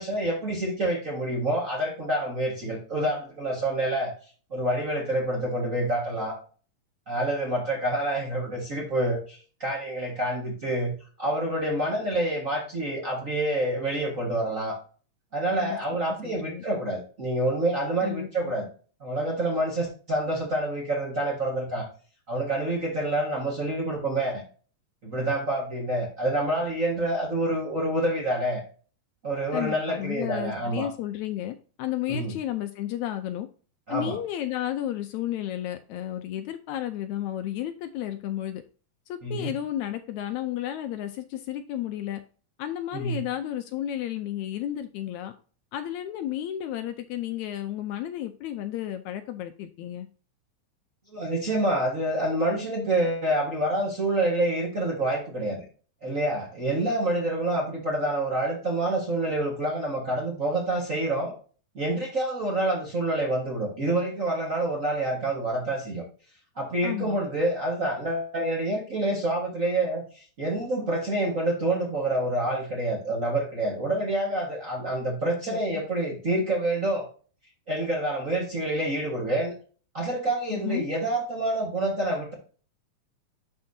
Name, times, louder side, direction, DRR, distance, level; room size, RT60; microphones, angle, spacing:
voice 1, 0.0-4.1 4.5-6.4 7.1-10.9 11.2-14.8 15.3-18.7 19.0-21.9 22.3-24.4 25.0-28.6 29.2-30.9 32.1-32.4 33.9-34.2 39.2-39.5 42.9-43.2 51.1-55.6 56.0-61.3 61.7-66.0 66.6-77.1 77.7-79.5 79.9-82.3, right 1 dB, 35° right, -3 dB, 1.4 m, -27 dB
voice 2, 16.2-16.6 18.0-18.5 29.5-33.5 33.9-38.6 39.1-42.2 42.6-45.3 45.7-50.1 66.8-67.2 75.5-75.6 80.5-80.9, left 12 dB, 75° left, 8 dB, 1.8 m, -32 dB
11.5 x 4.4 x 2.7 m, 0.38 s
omnidirectional pair, 3.7 m